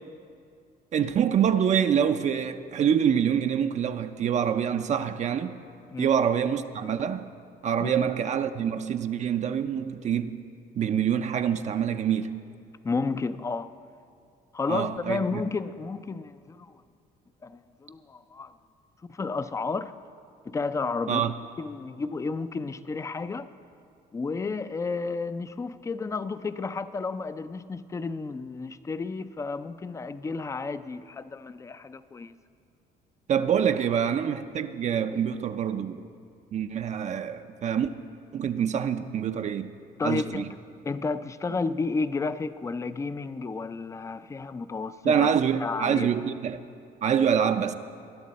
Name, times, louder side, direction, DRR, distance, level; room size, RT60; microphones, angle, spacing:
voice 1, 0.9-5.6 6.0-7.3 7.6-10.4 10.8-12.5 14.7-15.4 21.1-21.3 33.3-36.0 36.5-37.9 38.3-39.7 40.0-40.5 45.0-46.6 47.0-47.7, right 8 dB, 45° right, 0.5 m, -26 dB
voice 2, 12.8-13.7 14.5-16.8 17.4-18.5 19.1-19.9 20.4-21.2 21.6-23.5 24.1-32.3 35.1-35.2 40.0-40.5 40.8-46.1, left 4 dB, 20° left, 0.4 m, -32 dB
20.5 x 11.0 x 4.1 m
cardioid pair, 110°, 17 cm